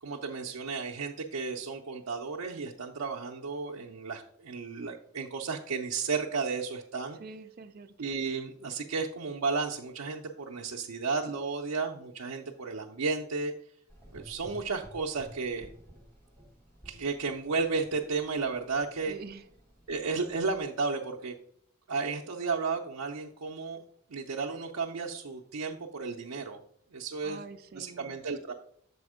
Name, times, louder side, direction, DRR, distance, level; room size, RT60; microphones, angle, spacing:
voice 1, 0.0-7.2 8.0-13.5 14.1-15.7 16.8-19.2 19.9-21.3 21.9-23.8 24.1-26.6 26.9-27.4 27.7-28.5, right 4 dB, 90° right, 0 dB, 0.6 m, -33 dB
voice 2, 7.2-8.1 19.1-19.5 27.2-28.2, right 4 dB, 45° right, 9 dB, 0.5 m, -46 dB
Gurgling / Engine, 13.9-20.6, equal, 10° left, 1.3 m, -54 dB
6.9 x 4.3 x 4.8 m, 0.67 s
head